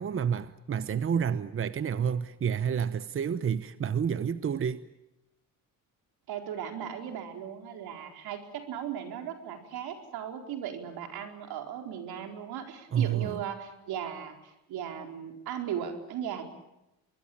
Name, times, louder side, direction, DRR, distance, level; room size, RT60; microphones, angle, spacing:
voice 1, 0.0-4.8 12.9-13.4, right 8 dB, 35° right, 1.0 m, -29 dB
voice 2, 6.3-16.4, right 9 dB, 80° right, 4.4 m, -37 dB
25.0 x 21.5 x 8.7 m
cardioid pair, 105°, 37 cm